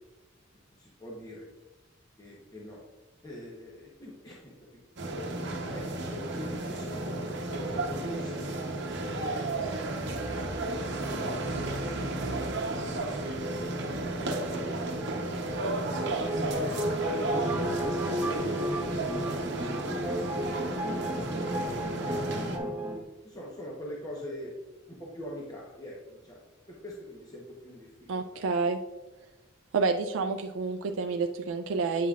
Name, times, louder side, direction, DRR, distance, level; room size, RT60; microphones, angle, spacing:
voice 1, 0.7-1.5 2.2-2.9 3.2-4.8 5.5-9.4 11.4-13.1 14.0-14.9 15.7-16.8 22.6-22.7 23.2-24.5 24.9-26.4 26.7-28.5, left 1 dB, 20° left, -4 dB, 0.9 m, -45 dB
sound 1, 5.0-22.6, right 2 dB, 60° right, 0.9 m, -33 dB
sound 2, 16.3-23.0, equal, 10° right, 1.2 m, -33 dB
voice 2, 28.1-28.8 29.7-32.1, right 4 dB, 80° right, 5 dB, 0.4 m, -29 dB
8.5 x 5.6 x 2.4 m, 1.1 s
head